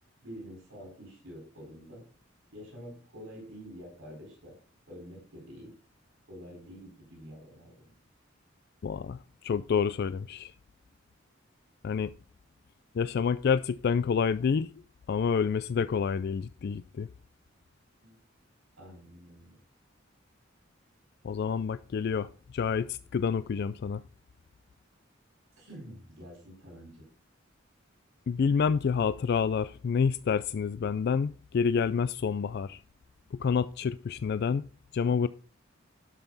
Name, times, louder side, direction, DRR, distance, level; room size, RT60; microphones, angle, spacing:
voice 1, 0.2-2.1 2.5-4.6 4.9-5.7 6.3-7.9 18.0-18.2 18.8-19.5 25.6-27.1, equal, 85° right, 4.7 m, -47 dB
voice 2, 8.8-9.2 9.4-10.5 11.8-12.1 12.9-14.7 15.1-17.1 21.2-24.0 28.3-32.8 33.3-34.6 34.9-35.3, left 6 dB, 55° left, 0.3 m, -28 dB
11.5 x 5.7 x 4.0 m
head